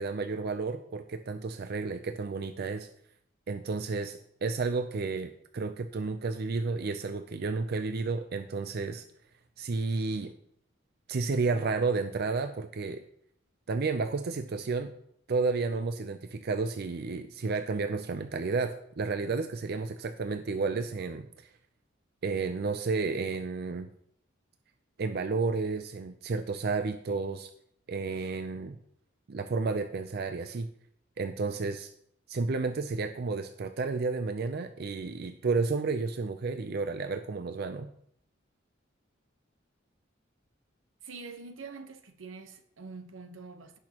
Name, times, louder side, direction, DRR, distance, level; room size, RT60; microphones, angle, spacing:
voice 1, 0.0-2.9 3.5-9.0 9.6-10.3 11.1-13.0 13.7-14.9 15.3-21.3 22.2-23.9 25.0-27.5 27.9-28.8 29.3-30.7 31.2-31.9 32.3-37.9, right 4 dB, 55° right, 0.5 m, -31 dB
voice 2, 41.0-43.8, right 4 dB, 85° right, 1.0 m, -45 dB
17.0 x 6.1 x 2.9 m
head